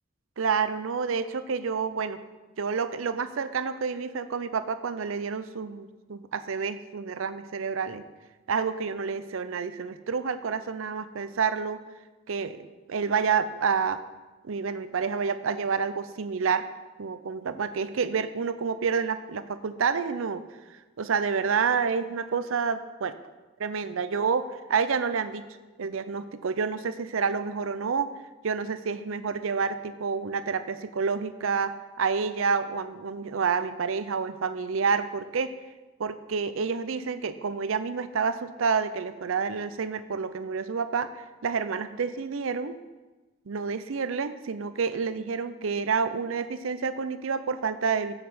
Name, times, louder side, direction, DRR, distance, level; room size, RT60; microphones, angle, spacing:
voice 1, 0.4-2.2 2.6-8.0 8.5-11.8 12.3-14.0 14.4-16.7 17.0-20.4 21.0-23.1 23.6-25.5 25.8-28.1 28.4-35.5 36.0-42.8 43.5-48.2, right 5 dB, 80° right, 12 dB, 0.5 m, -29 dB
7.7 x 6.7 x 5.5 m, 1.2 s
head